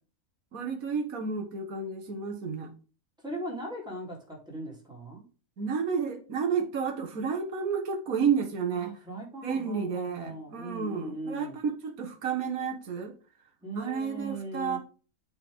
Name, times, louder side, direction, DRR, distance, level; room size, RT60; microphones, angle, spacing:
voice 1, 0.5-2.7 5.6-8.9 9.4-13.1 13.8-14.8, right 6 dB, 75° right, 1.9 m, -31 dB
voice 2, 3.2-5.2 8.7-11.6 13.6-14.8, right 1 dB, 5° right, 3.6 m, -39 dB
8.5 x 5.8 x 3.6 m
omnidirectional pair, 1.5 m